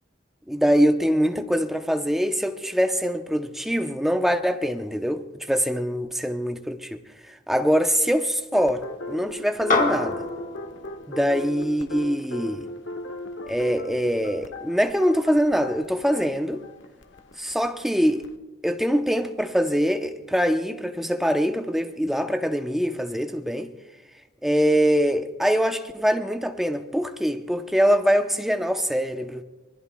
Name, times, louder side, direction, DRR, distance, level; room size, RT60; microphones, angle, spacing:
voice 1, 0.5-7.0 7.5-10.3 11.1-12.7 13.5-16.6 17.4-18.2 18.6-23.7 24.4-29.4, equal, ahead, 0.7 m, -23 dB
sound 1, 8.5-18.3, left 2 dB, 80° left, 1.1 m, -38 dB
sound 2, 9.7-14.3, left 3 dB, 45° left, 1.3 m, -30 dB
26.5 x 21.0 x 2.3 m
head